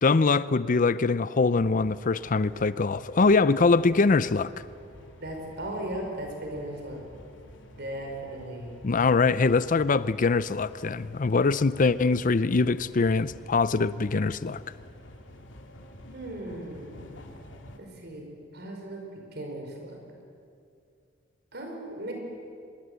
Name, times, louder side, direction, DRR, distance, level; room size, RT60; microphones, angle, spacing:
voice 1, 0.0-4.5 8.8-14.6, left 4 dB, 45° left, 16 dB, 0.5 m, -23 dB
sound 1, 1.6-17.8, left 1 dB, 80° left, 2.4 m, -49 dB
voice 2, 5.0-7.0 7.7-8.8 16.1-17.2 17.8-18.3 18.5-20.0 21.5-22.1, right 1 dB, 60° right, 2 dB, 5.4 m, -37 dB
24.5 x 21.5 x 8.1 m, 2.4 s
head